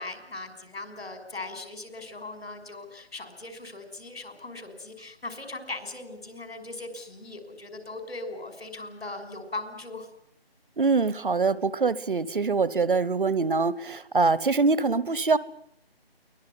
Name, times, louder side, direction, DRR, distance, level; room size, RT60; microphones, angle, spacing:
voice 1, 0.0-10.1, left 2 dB, 80° left, 8 dB, 6.3 m, -39 dB
voice 2, 10.8-15.4, right 4 dB, 55° right, 19 dB, 1.1 m, -24 dB
23.5 x 19.0 x 9.7 m, 0.71 s
figure-of-eight pair, 165°, 31 cm